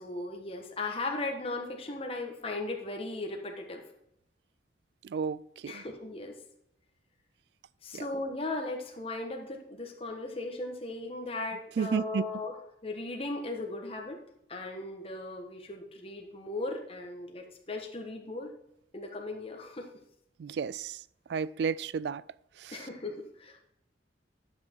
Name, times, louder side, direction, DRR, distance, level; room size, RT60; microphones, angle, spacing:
voice 1, 0.0-3.8 5.7-6.4 7.8-12.6 12.8-14.2 14.5-18.5 18.9-19.9 22.7-23.6, left 2 dB, 30° left, 1.3 m, -37 dB
voice 2, 5.0-5.8 7.9-8.1 11.8-12.3 20.4-21.0 21.3-22.2 22.6-22.8, right 6 dB, 65° right, 0.3 m, -32 dB
10.0 x 6.0 x 4.5 m
head